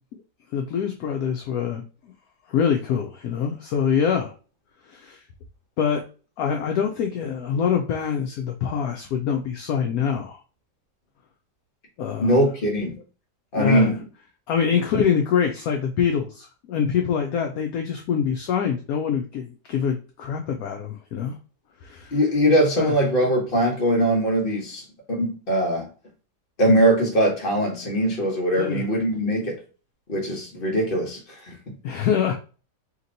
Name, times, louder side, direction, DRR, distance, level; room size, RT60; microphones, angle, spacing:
voice 1, 0.5-1.8 2.5-4.3 4.9-5.2 5.8-6.0 6.4-10.4 12.0-12.3 13.5-14.0 14.5-21.3 21.8-22.2 22.8-22.9 28.6-28.8 31.8-32.3, left 7 dB, 70° left, 0.9 m, -24 dB
voice 2, 12.2-13.0 13.5-14.0 22.1-25.9 26.6-29.6 30.1-31.7, right 1 dB, 35° left, 1.3 m, -21 dB
2.9 x 2.9 x 3.9 m
omnidirectional pair, 1.8 m